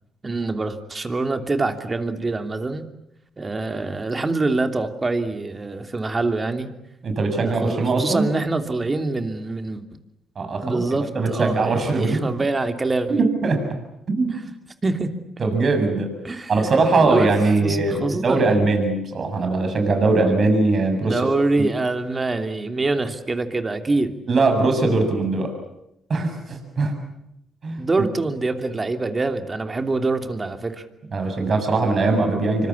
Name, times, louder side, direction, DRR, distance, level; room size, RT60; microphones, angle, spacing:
voice 1, 0.2-2.8 3.4-6.7 7.4-9.8 10.6-13.2 14.8-15.1 16.2-16.7 17.0-17.3 17.6-18.6 21.0-24.1 27.8-30.8, right 3 dB, 25° right, 7 dB, 3.0 m, -25 dB
voice 2, 7.0-8.3 10.4-12.3 13.1-13.6 14.1-14.4 15.4-16.1 16.5-21.2 21.6-21.7 24.3-25.5 26.1-26.9 27.6-27.8 31.1-32.7, right 3 dB, 45° right, 5 dB, 7.3 m, -21 dB
26.5 x 25.0 x 8.5 m, 0.81 s
cardioid pair, 90°, 0 cm